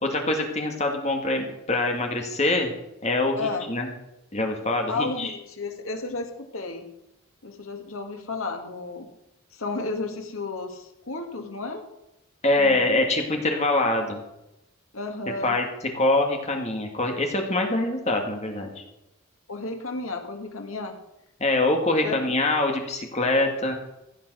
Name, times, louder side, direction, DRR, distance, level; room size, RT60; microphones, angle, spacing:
voice 1, 0.0-2.7 3.0-3.9 4.3-5.3 12.4-14.2 15.4-15.7 15.9-18.8 21.4-23.7, left 2 dB, 30° left, 3 dB, 2.1 m, -24 dB
voice 2, 3.4-3.7 4.9-6.8 7.4-9.1 9.5-11.9 12.6-13.0 14.9-15.6 19.5-20.9 22.0-22.1, left 3 dB, 75° left, 4 dB, 2.0 m, -32 dB
15.0 x 8.0 x 6.3 m, 0.87 s
head